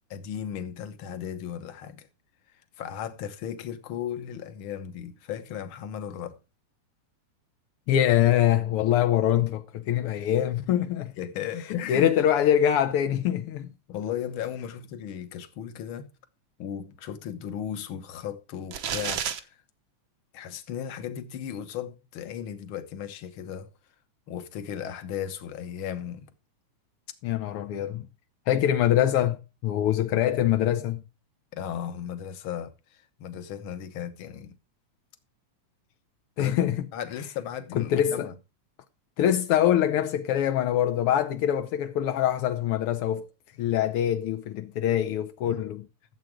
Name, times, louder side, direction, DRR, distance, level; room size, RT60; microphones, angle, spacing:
voice 1, 0.1-2.1 2.8-6.4 11.2-12.1 13.9-16.1 16.6-19.5 20.3-23.7 24.3-26.3 31.5-32.7 33.2-34.6 36.4-36.6 36.9-38.3 45.4-45.6, left 9 dB, 55° left, 1.6 m, -36 dB
voice 2, 7.9-11.1 11.7-13.7 27.2-28.1 28.5-31.0 36.4-36.9 37.7-38.3 39.2-43.2 43.6-45.9, left 11 dB, 75° left, 1.3 m, -24 dB
sound 1, 18.7-19.4, right 8 dB, 60° right, 1.3 m, -30 dB
13.0 x 7.9 x 4.7 m
omnidirectional pair, 3.3 m